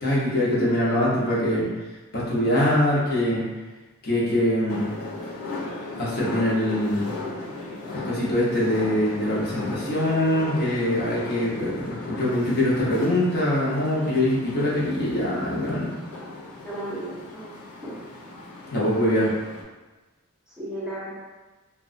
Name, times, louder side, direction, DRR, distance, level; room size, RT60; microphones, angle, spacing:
voice 1, 0.0-1.7 2.1-3.4 4.0-4.9 6.0-7.1 7.9-15.9 18.7-19.3, left 1 dB, 45° left, -7 dB, 0.7 m, -23 dB
sound 1, 4.7-19.6, left 2 dB, 80° left, 0.5 m, -37 dB
voice 2, 16.6-17.5 17.8-17.9 20.5-21.1, right 1 dB, 5° right, -9 dB, 0.6 m, -35 dB
2.8 x 2.1 x 2.5 m, 1.2 s
head